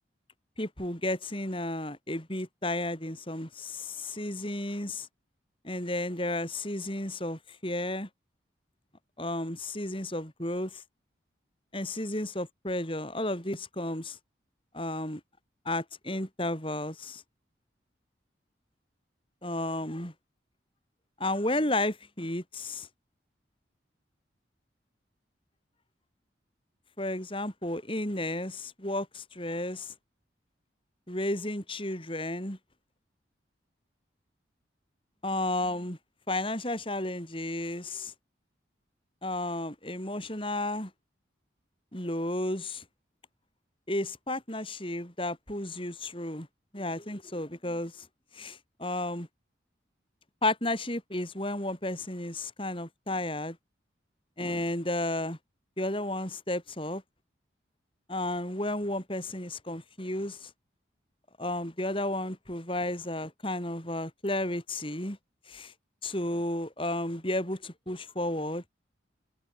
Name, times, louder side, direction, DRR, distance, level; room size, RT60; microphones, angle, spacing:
voice 1, 0.6-5.1 5.6-8.1 9.2-10.8 11.7-14.2 14.7-15.2 15.7-17.2 19.4-20.1 21.2-22.9 27.0-29.9 31.1-32.6 35.2-36.0 36.3-38.1 39.2-40.9 41.9-42.8 43.9-46.5 46.7-47.9 48.4-49.3 50.4-53.6 54.4-55.4 55.8-57.0 58.1-60.5 61.4-65.2 65.5-65.7 66.0-68.6, left 1 dB, 30° left, 7.1 m, -32 dB
open air
head